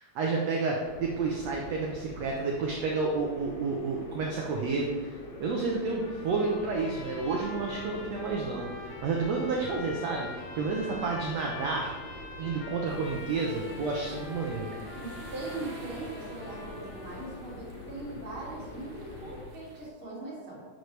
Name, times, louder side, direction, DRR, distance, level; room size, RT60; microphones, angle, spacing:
voice 1, 0.1-5.1 5.4-11.9 12.4-14.7, right 4 dB, 85° right, 0 dB, 1.4 m, -30 dB
sound 1, 0.8-19.5, left 3 dB, 65° left, 1.1 m, -45 dB
sound 2, 6.0-17.6, left 3 dB, 80° left, 3.1 m, -45 dB
sound 3, 12.9-19.9, right 2 dB, 65° right, 2.1 m, -50 dB
voice 2, 15.0-20.6, right 2 dB, 40° right, -6 dB, 2.9 m, -41 dB
11.0 x 6.6 x 3.2 m, 1.4 s
omnidirectional pair, 4.1 m